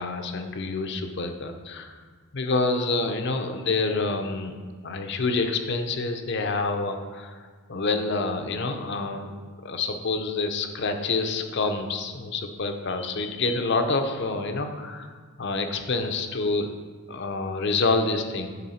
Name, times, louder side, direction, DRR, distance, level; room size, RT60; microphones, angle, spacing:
voice 1, 0.0-2.0 2.3-4.6 4.8-7.4 7.7-9.3 9.6-15.1 15.4-16.7 17.1-18.5, left 3 dB, 50° left, 6 dB, 0.6 m, -27 dB
10.0 x 3.6 x 4.3 m, 1.5 s
head